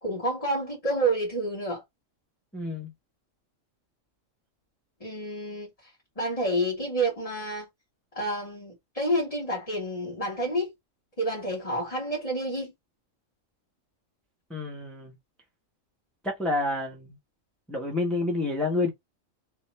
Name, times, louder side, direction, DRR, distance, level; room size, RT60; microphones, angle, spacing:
voice 1, 0.0-1.8 5.0-5.7 6.2-7.7 8.1-10.7 11.2-12.7, right 1 dB, 30° left, 1.8 m, -29 dB
voice 2, 2.5-2.9 14.5-15.1 16.2-17.2 17.7-18.9, left 2 dB, ahead, 1.2 m, -29 dB
3.4 x 2.9 x 4.3 m
omnidirectional pair, 1.3 m